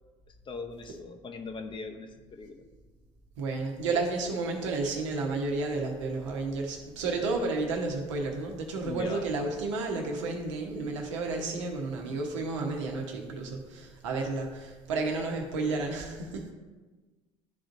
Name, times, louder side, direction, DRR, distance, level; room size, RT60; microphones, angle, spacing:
voice 1, 0.4-2.7 8.8-9.2, left 4 dB, 30° left, 6 dB, 0.7 m, -40 dB
voice 2, 3.4-16.5, right 3 dB, 75° right, 2 dB, 1.0 m, -31 dB
11.0 x 3.8 x 2.6 m, 1.3 s
figure-of-eight pair, 60°, 16 cm